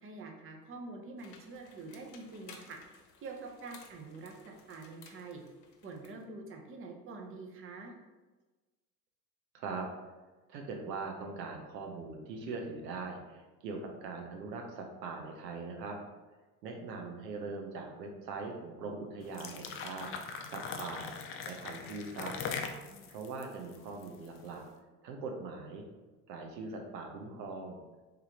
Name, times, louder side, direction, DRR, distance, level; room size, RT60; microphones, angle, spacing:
voice 1, 0.0-2.8 3.2-5.4 5.8-7.9 22.8-23.1, right 3 dB, 25° right, 2 dB, 0.7 m, -46 dB
sound 1, 1.2-6.2, left 5 dB, 80° left, 0.7 m, -57 dB
voice 2, 9.5-9.9 10.5-16.0 16.6-21.1 21.5-22.3 23.1-24.6 25.0-25.8 26.3-27.8, right 4 dB, 80° right, 2 dB, 0.7 m, -41 dB
sound 2, 19.2-24.5, left 6 dB, 30° left, 0.3 m, -41 dB
3.7 x 3.3 x 2.8 m, 1.2 s
hypercardioid pair, 65°, 49 cm